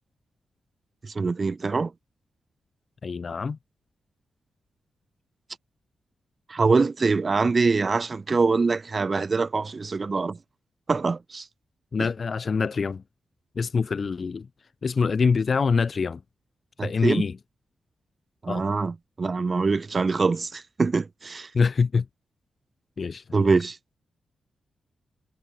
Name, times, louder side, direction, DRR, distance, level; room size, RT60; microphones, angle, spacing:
voice 1, 1.0-1.9 6.5-10.4 10.9-11.5 12.0-12.1 16.8-17.2 18.4-21.5 23.3-23.8, right 4 dB, 40° right, 2.0 m, -24 dB
voice 2, 3.0-3.6 11.9-13.0 13.6-14.5 14.8-16.2 16.8-17.3 18.5-18.7 21.5-22.0 23.0-23.5, left 5 dB, 50° left, 1.3 m, -25 dB
cardioid pair, 60°, 0 cm